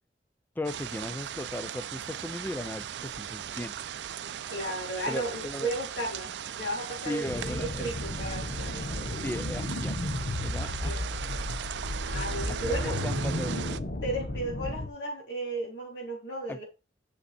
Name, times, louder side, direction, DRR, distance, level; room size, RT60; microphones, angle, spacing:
voice 1, 0.6-3.8 5.1-5.7 7.1-7.9 9.2-10.0 10.4-11.2 12.6-13.6 16.5-16.6, left 1 dB, 10° left, 0.4 m, -37 dB
sound 1, 0.6-13.8, right 9 dB, 85° right, 0.4 m, -38 dB
voice 2, 4.5-8.9 10.6-11.3 12.0-13.0 14.0-16.6, right 1 dB, 80° left, 3.6 m, -35 dB
sound 2, 7.3-14.9, left 1 dB, 55° left, 0.9 m, -33 dB
6.6 x 5.5 x 4.3 m
head